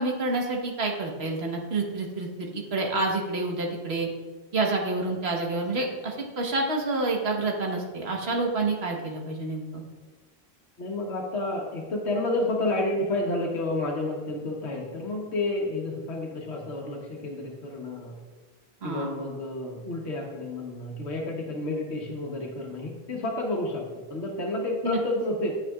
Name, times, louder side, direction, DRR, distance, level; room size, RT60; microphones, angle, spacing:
voice 1, 0.0-4.1 4.5-9.8 18.8-19.1 24.8-25.0, right 2 dB, 70° right, 0 dB, 1.5 m, -28 dB
voice 2, 10.8-18.2 18.8-25.5, left 2 dB, 85° left, -1 dB, 1.4 m, -30 dB
9.0 x 8.9 x 2.4 m, 1.3 s
omnidirectional pair, 1.1 m